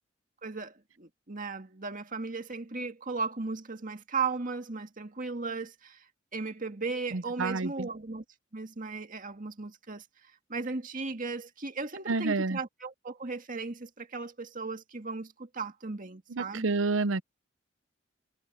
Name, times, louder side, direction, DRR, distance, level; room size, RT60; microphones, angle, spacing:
voice 1, 0.4-8.2 8.5-10.1 10.5-16.7, right 4 dB, 45° right, 1.9 m, -36 dB
voice 2, 7.1-7.9 12.1-12.6 16.3-17.2, right 3 dB, 85° right, 0.7 m, -29 dB
head